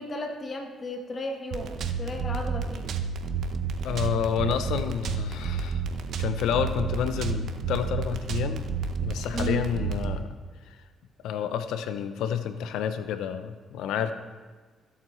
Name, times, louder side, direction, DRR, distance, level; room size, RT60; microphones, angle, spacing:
voice 1, 0.0-2.9 9.3-9.7, left 1 dB, 40° left, 3 dB, 1.3 m, -34 dB
sound 1, 1.5-10.2, right 5 dB, 70° right, 0.7 m, -30 dB
voice 2, 3.8-5.8 6.2-8.7 9.0-10.3 11.2-14.1, left 8 dB, 85° left, 10 dB, 0.6 m, -29 dB
15.0 x 7.5 x 3.1 m, 1.4 s
cardioid pair, 90°, 0 cm